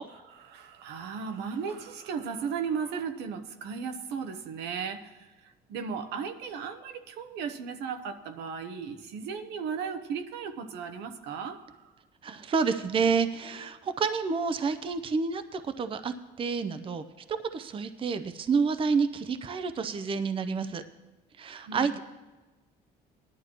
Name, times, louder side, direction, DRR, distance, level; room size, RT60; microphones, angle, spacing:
voice 1, 0.1-11.9 21.7-22.0, right 6 dB, 85° right, 7 dB, 0.9 m, -36 dB
voice 2, 12.2-17.0 17.3-20.8 21.4-22.0, right 5 dB, 30° right, 10 dB, 0.6 m, -29 dB
18.0 x 11.0 x 3.0 m, 1.2 s
cardioid pair, 110°, 17 cm